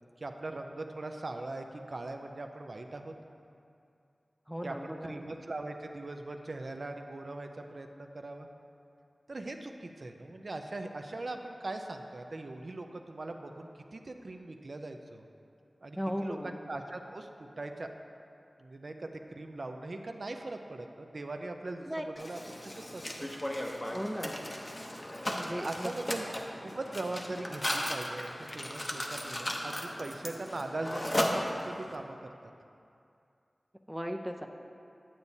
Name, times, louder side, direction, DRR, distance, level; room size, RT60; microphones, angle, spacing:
voice 1, 0.2-3.1 4.6-8.5 9.3-15.3 15.8-17.3 17.6-17.9 18.6-22.4 22.8-23.3 25.5-26.3 26.6-32.3, right 2 dB, 65° right, 4 dB, 0.4 m, -40 dB
voice 2, 4.5-5.3 16.0-16.6 21.9-22.0 23.9-24.4 25.4-25.9 30.3-30.4 33.9-34.5, equal, 5° right, 4 dB, 0.4 m, -37 dB
Mechanisms, 22.2-31.9, left 1 dB, 30° left, 0.7 m, -36 dB
8.7 x 8.2 x 2.7 m, 2.5 s
wide cardioid pair, 65°, 0 cm